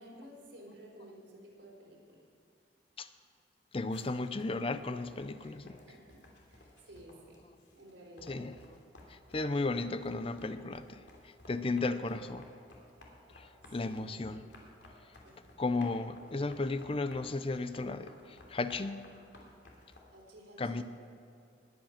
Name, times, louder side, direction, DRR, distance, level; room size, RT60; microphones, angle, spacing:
voice 1, 0.0-2.2 5.4-7.4 7.7-8.4 13.5-14.0 15.2-15.6 20.1-20.8, right 1 dB, 90° right, -2 dB, 3.8 m, -54 dB
voice 2, 3.7-5.6 8.3-8.5 9.1-12.5 13.3-14.5 15.6-19.1 20.6-20.8, left 3 dB, 30° left, 11 dB, 0.5 m, -35 dB
sound 1, 3.9-7.9 8.2-20.0, left 2 dB, 75° left, 2.7 m, -56 dB
20.0 x 8.9 x 5.8 m, 2.5 s
head